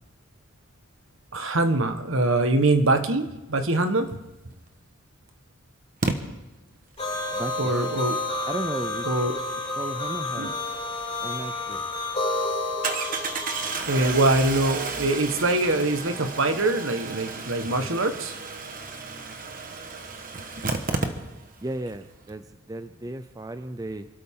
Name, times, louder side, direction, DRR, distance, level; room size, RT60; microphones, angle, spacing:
voice 1, 1.3-4.1 7.6-8.2 9.0-9.3 10.4-10.5 13.9-18.3, right 2 dB, 65° right, 7 dB, 1.4 m, -23 dB
Engine starting, 4.5-4.6 6.0-6.2 11.2-11.3 11.7-11.8 12.8-21.6 21.9-22.0 22.2-22.3, right 4 dB, 40° right, 1.3 m, -32 dB
sound 1, 7.0-13.8, left 2 dB, 25° left, 5.7 m, -30 dB
voice 2, 7.3-8.0 8.5-9.1 9.8-10.5 11.2-11.8 21.6-24.1, right 1 dB, 15° right, 10 dB, 0.5 m, -34 dB
28.0 x 13.0 x 3.8 m, 1.0 s
head